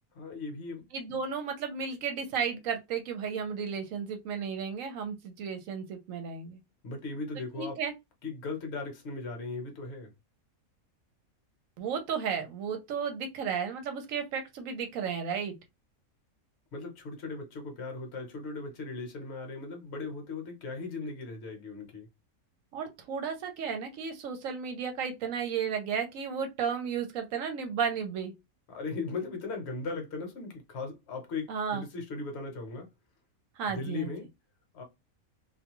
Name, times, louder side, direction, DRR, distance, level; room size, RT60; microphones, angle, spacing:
voice 1, 0.1-0.8 1.1-1.2 6.8-7.8 8.2-10.1 16.7-22.1 28.7-32.9 33.7-34.3 34.7-34.8, left 3 dB, 55° left, 1.0 m, -38 dB
voice 2, 0.9-6.6 7.6-7.9 11.8-15.6 22.7-28.3 31.5-31.8 33.6-34.1, right 6 dB, 70° right, 0.9 m, -33 dB
2.5 x 2.2 x 2.9 m
omnidirectional pair, 1.5 m